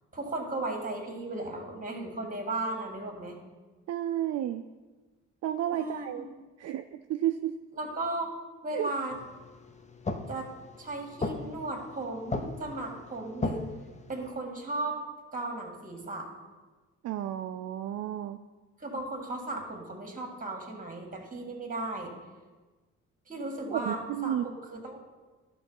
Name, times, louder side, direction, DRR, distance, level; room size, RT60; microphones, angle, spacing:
voice 1, 0.1-3.4 5.7-6.0 7.7-8.3 8.6-9.1 10.3-10.5 10.8-13.6 14.1-15.0 15.3-16.3 18.8-22.1 23.3-24.4 24.7-25.0, right 2 dB, 25° right, 2 dB, 1.8 m, -35 dB
voice 2, 3.9-4.6 5.4-6.3 6.6-7.5 8.7-8.9 17.0-18.4 23.7-24.5, right 12 dB, 60° right, 8 dB, 0.4 m, -32 dB
sound 1, 9.1-14.3, left 3 dB, 25° left, 0.7 m, -38 dB
11.5 x 3.9 x 5.5 m, 1.3 s
cardioid pair, 90°, 30 cm